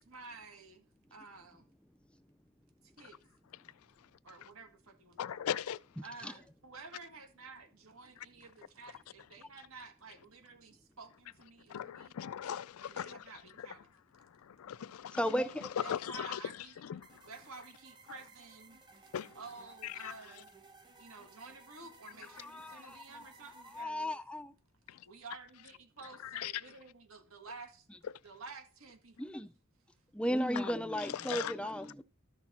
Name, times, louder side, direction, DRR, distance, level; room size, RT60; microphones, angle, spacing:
voice 1, 0.0-1.7 2.8-3.2 4.2-5.5 6.0-12.1 12.8-13.9 15.8-20.5 21.0-24.1 25.0-27.9 28.2-29.3 31.6-31.7, right 4 dB, 75° right, 1.7 m, -52 dB
voice 2, 5.2-5.8 11.7-13.2 14.5-15.2 15.9-16.4 16.8-17.1 19.1-19.3 19.8-20.1 24.9-25.0 26.3-26.5 30.6-30.7 31.1-31.5, left 9 dB, 85° left, 0.4 m, -38 dB
voice 3, 6.0-6.3 15.1-15.7 22.4-23.2 23.7-24.5 29.2-29.5 30.1-32.0, equal, 5° left, 0.3 m, -35 dB
sound 1, 17.0-23.8, right 3 dB, 20° right, 1.1 m, -59 dB
13.0 x 6.1 x 4.2 m
head